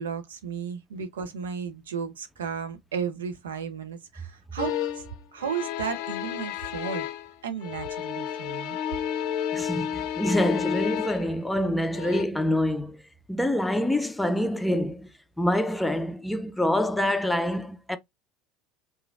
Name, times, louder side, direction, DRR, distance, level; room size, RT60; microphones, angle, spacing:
voice 1, 0.0-5.0 5.3-7.1 7.4-8.8, right 6 dB, 85° right, 0.6 m, -34 dB
sound 1, 4.6-5.1 5.4-7.3 7.6-11.4 11.9-12.2, left 9 dB, 65° left, 0.5 m, -31 dB
voice 2, 9.5-13.0 13.3-18.0, left 1 dB, 5° left, 0.5 m, -26 dB
3.0 x 2.4 x 2.4 m
hypercardioid pair, 75°, 0 cm